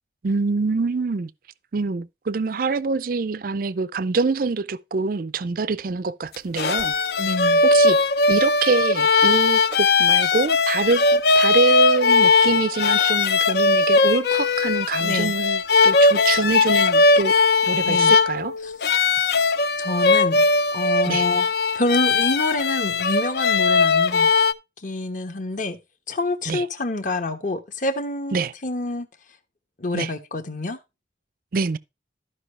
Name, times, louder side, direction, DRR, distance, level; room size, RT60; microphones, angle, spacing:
voice 1, 0.2-1.3 1.7-6.9 7.6-8.0 8.3-17.4 17.7-18.5 21.1-21.3 26.5-26.6 28.3-28.5 29.9-30.1 31.5-31.8, right 4 dB, 50° right, 0.4 m, -25 dB
sound 1, 6.3-24.5, left 3 dB, 60° left, 0.6 m, -19 dB
voice 2, 7.2-7.6 15.0-15.3 17.8-18.2 18.6-19.1 19.8-20.4 20.7-21.5 21.7-24.3 24.8-25.8 26.1-29.1 29.8-30.8, left 2 dB, 45° left, 1.1 m, -27 dB
13.0 x 5.5 x 3.1 m
head